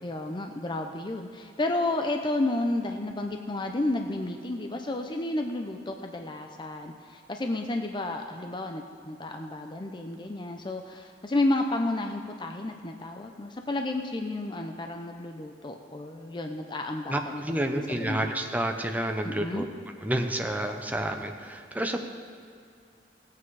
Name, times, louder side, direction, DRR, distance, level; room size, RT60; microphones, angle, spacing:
voice 1, 0.0-18.3 19.2-19.7, left 2 dB, 25° left, 4 dB, 0.6 m, -31 dB
voice 2, 17.1-19.7 20.0-22.0, right 1 dB, 10° right, 4 dB, 0.8 m, -29 dB
16.0 x 8.5 x 4.8 m, 2.4 s
head